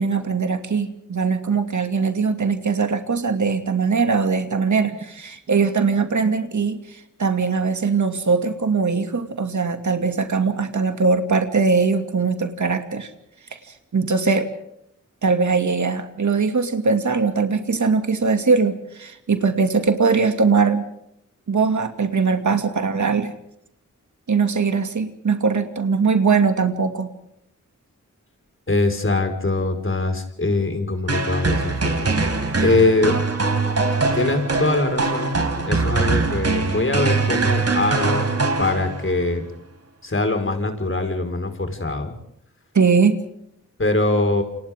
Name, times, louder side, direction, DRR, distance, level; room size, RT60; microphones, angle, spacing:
voice 1, 0.0-13.1 13.9-14.5 15.2-20.8 21.5-23.3 24.3-27.1 42.7-43.2, right 4 dB, 70° right, 7 dB, 2.6 m, -21 dB
voice 2, 28.7-32.1 32.6-33.1 34.1-39.4 40.0-42.2 43.8-44.4, left 2 dB, 40° left, 5 dB, 5.2 m, -22 dB
sound 1, 31.1-39.2, right 3 dB, 55° right, 4.5 m, -22 dB
28.5 x 27.5 x 3.8 m, 0.77 s
wide cardioid pair, 65°, 30 cm